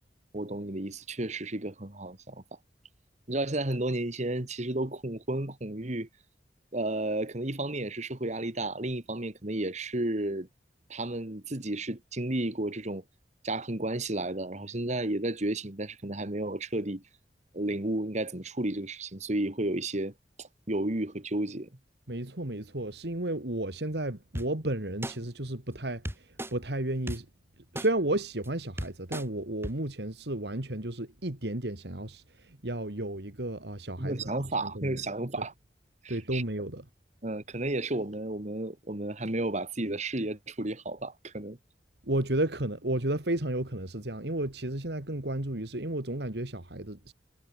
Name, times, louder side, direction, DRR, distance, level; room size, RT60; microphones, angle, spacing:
voice 1, 0.3-2.4 3.3-6.1 6.7-10.5 10.9-13.0 13.4-17.0 17.5-20.1 20.4-21.7 34.0-35.5 36.0-36.4 37.2-41.6, right 1 dB, 40° right, 2.1 m, -32 dB
voice 2, 22.1-27.3 27.7-35.0 35.4-35.5 36.1-36.9 42.0-47.1, right 1 dB, 70° right, 2.5 m, -33 dB
sound 1, 24.3-24.5 25.0-25.1 26.0-26.5 27.1-27.2 27.7-27.9 28.4-28.5 28.8-29.2 29.6-29.7, right 1 dB, 15° right, 6.3 m, -34 dB
head